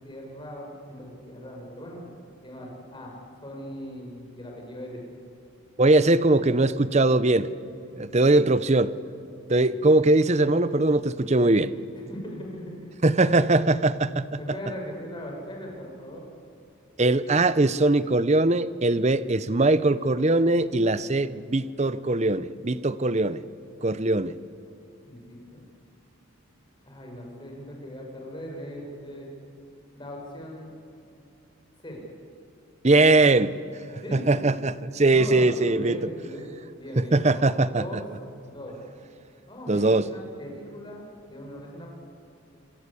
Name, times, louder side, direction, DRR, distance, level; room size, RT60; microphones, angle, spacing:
voice 1, 0.0-2.0 2.4-3.1 3.4-5.0 12.1-12.9 14.4-16.2 25.0-25.6 26.8-29.3 29.9-30.7 31.8-32.0 32.8-33.0 34.0-34.5 35.0-38.1 38.5-38.8 39.5-41.9, equal, 20° left, 0 dB, 5.9 m, -39 dB
voice 2, 5.8-7.5 7.9-8.9 9.5-11.7 13.0-14.2 17.0-23.4 23.8-24.4 32.8-33.5 34.1-36.0 37.0-38.0 39.7-40.1, right 2 dB, 30° right, 15 dB, 0.7 m, -21 dB
26.5 x 26.5 x 8.5 m, 2.6 s
head